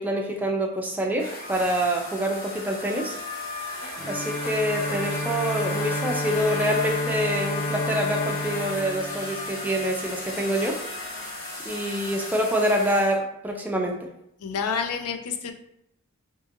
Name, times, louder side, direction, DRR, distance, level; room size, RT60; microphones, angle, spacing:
voice 1, 0.0-3.1 4.1-10.8 11.7-14.0, equal, 10° right, 0 dB, 0.4 m, -26 dB
sound 1, 1.2-13.2, left 2 dB, 70° left, 1.3 m, -35 dB
Bowed string instrument, 4.0-10.0, left 2 dB, 55° left, 1.5 m, -31 dB
voice 2, 14.4-15.5, left 6 dB, 90° left, 7 dB, 0.4 m, -28 dB
2.8 x 2.5 x 2.5 m, 0.78 s
head